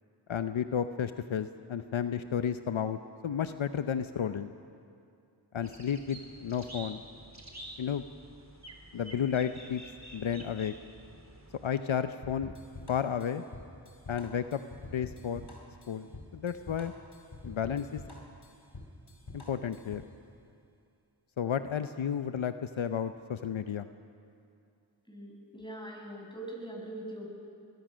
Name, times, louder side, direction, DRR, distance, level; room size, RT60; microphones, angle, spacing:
voice 1, 0.3-4.5 5.5-7.0 7.8-8.0 8.9-9.8 10.1-10.7 11.6-12.5 12.9-13.4 14.1-14.6 14.9-15.5 15.9-16.9 17.4-18.0 19.3-20.1 21.4-23.9, left 8 dB, 75° left, 10 dB, 0.8 m, -32 dB
sound 1, 5.6-11.7, right 1 dB, 35° right, 3.6 m, -49 dB
sound 2, 12.2-20.1, left 2 dB, 55° left, 4.6 m, -47 dB
voice 2, 25.1-27.3, right 1 dB, 10° left, 0 dB, 7.0 m, -42 dB
25.5 x 20.5 x 6.4 m, 2.5 s
cardioid pair, 40°, 48 cm